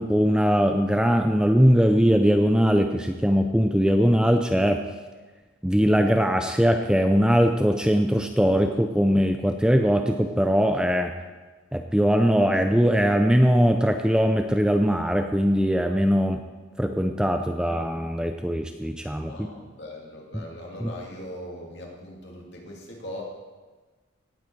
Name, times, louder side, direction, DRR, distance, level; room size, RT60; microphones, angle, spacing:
voice 1, 0.0-4.8 5.6-11.1 11.7-16.4 16.8-19.5 20.8-20.9, equal, 5° right, 5 dB, 0.4 m, -21 dB
voice 2, 19.3-23.2, left 1 dB, 55° left, -1 dB, 2.4 m, -40 dB
18.0 x 7.8 x 4.6 m, 1.3 s
head